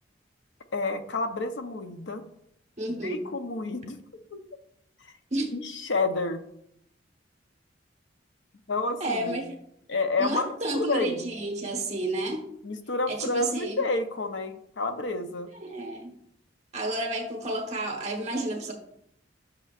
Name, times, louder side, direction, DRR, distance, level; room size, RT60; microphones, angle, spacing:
voice 1, 0.7-2.2 2.9-4.0 4.3-4.4 5.0-5.1 5.5-6.4 8.7-9.4 9.9-11.2 12.6-15.5, left 3 dB, 70° left, 8 dB, 0.8 m, -30 dB
voice 2, 2.8-3.3 5.3-5.5 9.0-9.6 10.2-12.4 13.1-13.8 15.6-16.1 16.7-18.7, right 2 dB, 40° right, 1 dB, 1.3 m, -31 dB
10.5 x 6.4 x 2.5 m, 0.74 s
head